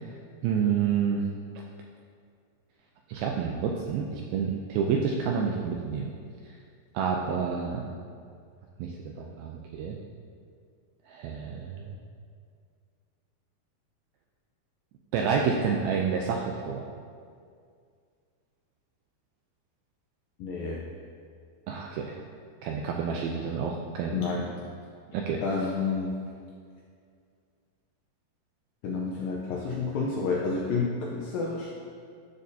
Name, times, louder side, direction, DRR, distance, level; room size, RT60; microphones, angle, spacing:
voice 1, 0.4-1.2 3.1-6.1 6.9-7.9 8.8-10.0 11.1-11.9 15.1-16.9 21.7-22.2 22.6-24.2 25.1-25.4, right 6 dB, 85° right, 0 dB, 2.1 m, -29 dB
voice 2, 20.4-20.8 24.1-24.5 25.4-26.2 28.8-31.7, left 4 dB, 85° left, -3 dB, 2.0 m, -29 dB
12.5 x 6.6 x 2.7 m, 2.2 s
omnidirectional pair, 4.8 m